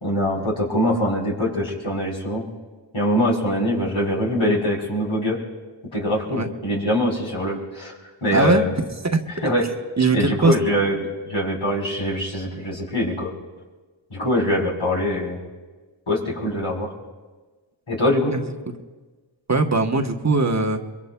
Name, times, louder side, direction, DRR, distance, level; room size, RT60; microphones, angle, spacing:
voice 1, 0.0-2.5 2.9-5.4 5.9-7.9 8.2-8.8 9.4-9.7 10.1-13.3 14.1-15.4 16.1-16.9 17.9-18.4, left 1 dB, 80° left, -4 dB, 3.9 m, -23 dB
voice 2, 8.3-8.6 9.1-9.2 10.0-10.5 18.3-18.4 19.5-20.8, right 3 dB, 35° right, 4 dB, 1.0 m, -20 dB
23.5 x 23.0 x 2.2 m, 1.3 s
wide cardioid pair, 50°, 47 cm